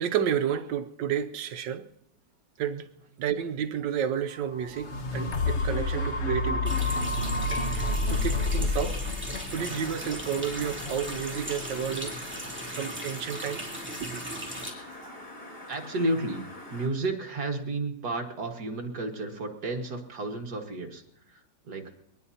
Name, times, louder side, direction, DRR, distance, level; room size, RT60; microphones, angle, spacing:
voice 1, 0.0-1.8 2.6-2.9 3.2-6.8 8.1-9.0 9.5-12.2 12.7-13.7 14.0-14.2 15.0-15.2, right 8 dB, 80° right, 1.5 m, -31 dB
sound 1, 4.5-12.6 13.1-13.2, left 2 dB, 45° left, 1.2 m, -30 dB
Water tap faucet, 6.6-14.7, equal, 5° right, 2.7 m, -38 dB
sound 2, 9.5-16.9, left 1 dB, 65° left, 3.8 m, -45 dB
voice 2, 15.7-16.4 16.7-21.9, right 2 dB, 60° right, 2.2 m, -32 dB
23.0 x 19.0 x 2.8 m
omnidirectional pair, 2.0 m